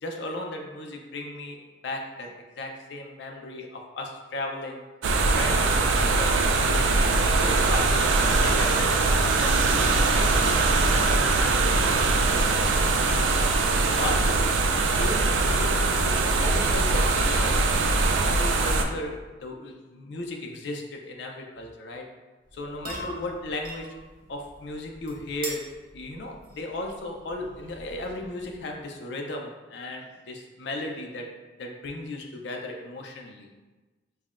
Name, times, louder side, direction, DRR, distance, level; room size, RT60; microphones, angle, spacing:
voice 1, 0.0-4.8 5.3-13.7 13.9-14.5 15.0-22.1 22.5-24.0 24.3-33.5, left 2 dB, 65° left, 2 dB, 0.5 m, -36 dB
sound 1, 5.0-18.8, right 3 dB, 85° right, 0.4 m, -22 dB
sound 2, 22.4-28.8, right 2 dB, 50° right, 0.7 m, -43 dB
5.4 x 2.1 x 2.4 m, 1.2 s
head